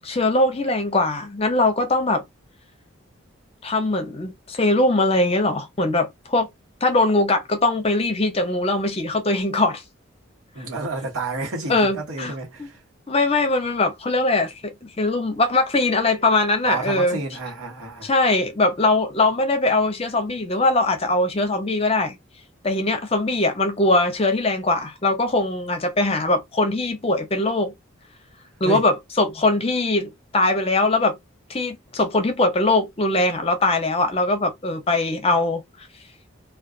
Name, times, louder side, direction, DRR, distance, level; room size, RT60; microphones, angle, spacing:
voice 1, 0.0-2.2 3.6-6.5 6.8-9.8 11.7-12.3 12.6-12.7 13.1-17.2 18.0-22.2 22.6-27.7 28.6-31.2 31.5-35.6, left 2 dB, 30° left, 0.5 m, -21 dB
voice 2, 10.5-12.8 16.6-18.1 28.6-28.8, right 3 dB, 85° right, 1.1 m, -30 dB
2.3 x 2.2 x 2.3 m
head